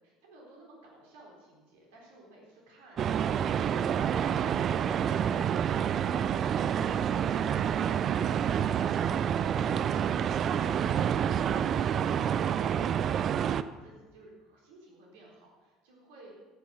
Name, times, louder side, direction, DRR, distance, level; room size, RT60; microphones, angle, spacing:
voice 1, 0.0-16.3, right 1 dB, 65° right, -2 dB, 3.8 m, -56 dB
sound 1, 3.0-13.6, right 8 dB, 40° right, 0.4 m, -28 dB
12.5 x 9.0 x 6.2 m, 1.3 s
figure-of-eight pair, 60°, 0 cm